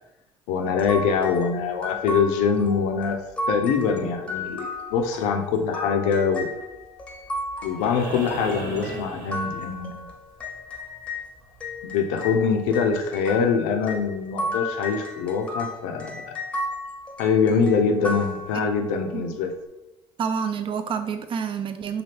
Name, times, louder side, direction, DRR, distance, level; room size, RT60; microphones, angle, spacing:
voice 1, 0.5-3.2 3.5-6.5 7.6-10.1 11.8-16.3 17.2-19.5, left 6 dB, 85° left, 5 dB, 0.4 m, -24 dB
sound 1, 0.8-11.3 11.6-19.0, left 1 dB, 10° left, 0.8 m, -34 dB
sound 2, 7.8-10.1 11.9-12.0, right 2 dB, 70° right, 1.3 m, -36 dB
voice 2, 20.2-22.0, right 6 dB, 45° right, 8 dB, 0.4 m, -28 dB
2.8 x 2.3 x 3.2 m, 0.95 s
supercardioid pair, 75°, 12 cm